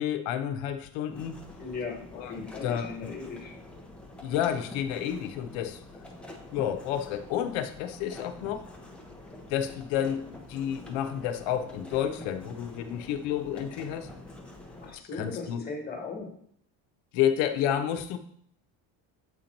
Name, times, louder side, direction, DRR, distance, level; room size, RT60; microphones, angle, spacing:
voice 1, 0.0-1.4 2.2-3.1 4.2-5.8 6.5-8.7 9.5-14.1 15.1-15.6 17.1-18.2, left 10 dB, 85° left, 8 dB, 0.8 m, -30 dB
sound 1, 1.1-14.9, left 1 dB, 5° left, 0.5 m, -47 dB
voice 2, 1.6-3.5 14.8-16.3, left 4 dB, 20° left, 0 dB, 1.3 m, -38 dB
8.0 x 3.0 x 5.2 m, 0.65 s
cardioid pair, 170°, 45 cm